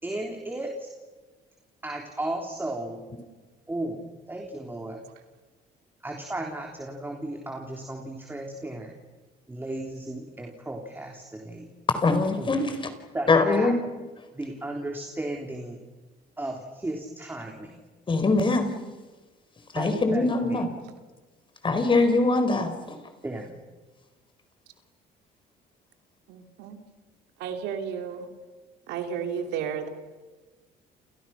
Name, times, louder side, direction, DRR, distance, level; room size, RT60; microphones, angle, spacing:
voice 1, 0.0-0.9 1.8-3.1 3.7-4.0 4.3-5.0 6.0-8.9 9.5-11.7 12.4-12.7 13.1-13.7 14.3-15.8 16.4-17.8 19.7-20.6 23.2-23.5, right 1 dB, 10° right, 1 dB, 3.5 m, -35 dB
voice 2, 11.9-12.9 13.3-13.7 18.1-18.7 19.7-20.7 21.6-22.7, left 3 dB, 30° left, 8 dB, 4.4 m, -22 dB
voice 3, 26.3-26.8 27.4-28.3 28.9-29.9, right 7 dB, 90° right, 6 dB, 2.9 m, -33 dB
29.5 x 29.5 x 6.0 m, 1.3 s
cardioid pair, 110°, 17 cm